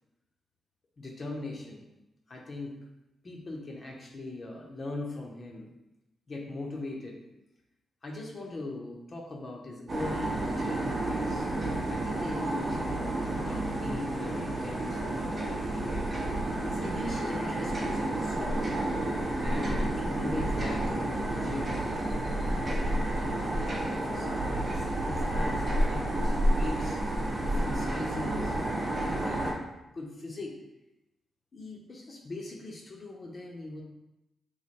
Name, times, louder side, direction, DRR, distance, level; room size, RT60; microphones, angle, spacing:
voice 1, 1.0-1.9 2.3-2.8 3.2-5.7 6.3-7.2 8.0-11.5 11.8-18.7 19.4-21.8 23.0-28.5 28.9-29.6 29.9-30.5 31.5-33.8, left 2 dB, 45° left, -1 dB, 0.7 m, -41 dB
sound 1, 9.9-29.5, right 1 dB, 35° right, 0.7 m, -30 dB
3.2 x 2.2 x 4.2 m, 0.93 s
cardioid pair, 85°, 0 cm